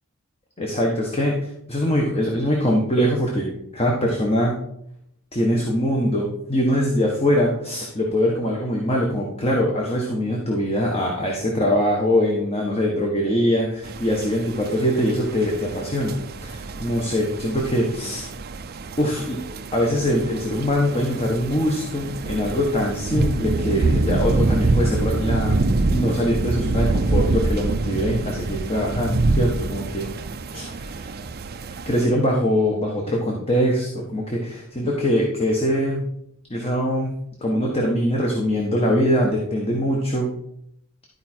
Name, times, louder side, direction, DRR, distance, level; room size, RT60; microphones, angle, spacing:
voice 1, 0.6-4.5 5.3-18.3 19.0-19.4 19.7-25.6 25.9-30.1 30.5-31.1 31.8-36.1 36.5-37.1 37.4-40.3, equal, 25° left, -1 dB, 1.3 m, -23 dB
sound 1, 13.8-32.1, right 2 dB, 45° right, 0.6 m, -26 dB
12.5 x 4.8 x 4.4 m, 0.75 s
head